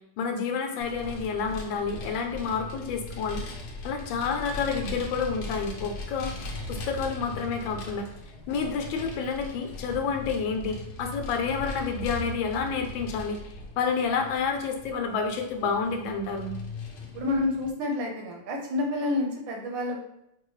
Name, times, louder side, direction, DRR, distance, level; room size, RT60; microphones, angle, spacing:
voice 1, 0.2-3.4 3.8-6.4 6.7-8.1 8.5-13.4 13.8-16.6, left 5 dB, 85° left, 4 dB, 1.4 m, -29 dB
Vehicle, 0.8-17.7, left 2 dB, 65° left, 1.2 m, -39 dB
voice 2, 17.1-20.0, left 2 dB, 85° right, 0 dB, 1.6 m, -29 dB
5.1 x 2.2 x 3.1 m, 0.79 s
omnidirectional pair, 2.0 m